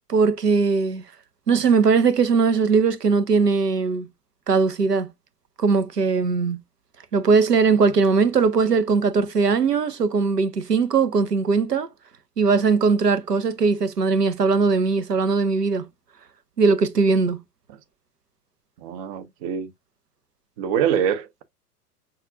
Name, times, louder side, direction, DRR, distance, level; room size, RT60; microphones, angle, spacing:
voice 1, 0.1-1.0 1.5-4.1 4.5-5.1 5.6-6.6 7.1-11.9 12.4-15.9 16.6-17.4, right 4 dB, 90° right, 0.7 m, -20 dB
voice 2, 18.8-19.7 20.6-21.4, right 8 dB, 25° right, 0.4 m, -25 dB
5.6 x 2.4 x 2.5 m
figure-of-eight pair, 90°, 46 cm